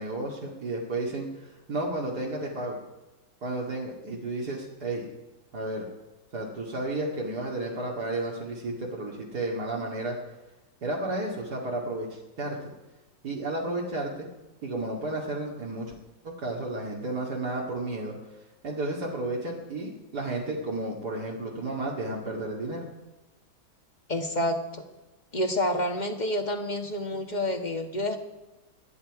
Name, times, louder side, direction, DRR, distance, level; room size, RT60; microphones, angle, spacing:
voice 1, 0.0-2.8 3.4-5.1 5.5-5.9 6.3-10.2 10.8-12.7 13.2-14.3 14.6-15.9 16.2-18.1 18.6-22.9, right 2 dB, 70° right, -3 dB, 2.9 m, -32 dB
voice 2, 24.1-24.8 25.3-28.2, left 1 dB, 25° left, 5 dB, 1.6 m, -28 dB
25.5 x 10.0 x 4.9 m, 1.1 s
omnidirectional pair, 1.8 m